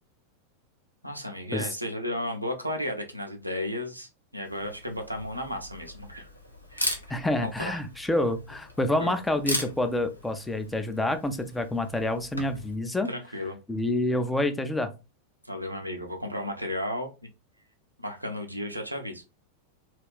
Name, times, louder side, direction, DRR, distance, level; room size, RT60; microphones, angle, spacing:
voice 1, 1.0-6.3 6.7-7.2 7.4-7.8 9.0-9.2 13.1-13.6 15.4-17.1 18.0-19.2, left 1 dB, 90° right, 3 dB, 0.5 m, -34 dB
Camera, 4.4-12.8, left 1 dB, 85° left, 0.5 m, -38 dB
voice 2, 7.1-13.1 13.7-14.9, left 1 dB, 5° left, 8 dB, 0.4 m, -28 dB
2.3 x 2.3 x 3.4 m, 0.29 s
figure-of-eight pair, 90°, 0 cm